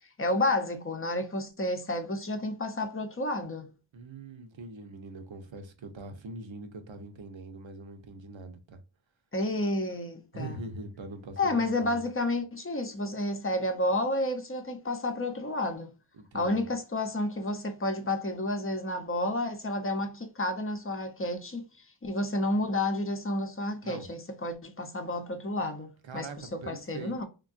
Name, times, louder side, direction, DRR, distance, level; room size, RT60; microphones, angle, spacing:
voice 1, 0.2-3.7 9.3-10.6 11.4-15.9 16.3-27.2, left 1 dB, 30° left, 0.6 m, -31 dB
voice 2, 3.9-8.8 10.3-12.0 16.1-16.7 23.8-24.0 26.0-27.1, right 3 dB, 75° right, 0.7 m, -42 dB
3.5 x 2.2 x 2.5 m
wide cardioid pair, 55°, 47 cm